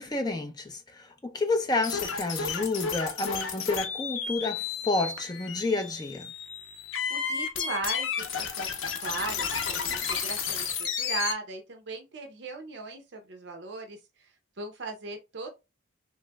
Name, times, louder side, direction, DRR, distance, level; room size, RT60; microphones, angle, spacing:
voice 1, 0.0-6.3, left 2 dB, 20° left, 0.4 m, -30 dB
sound 1, 1.8-11.3, left 6 dB, 80° left, 0.6 m, -32 dB
voice 2, 7.1-14.3 14.6-15.5, right 3 dB, 60° right, 0.6 m, -38 dB
3.1 x 2.9 x 2.2 m
head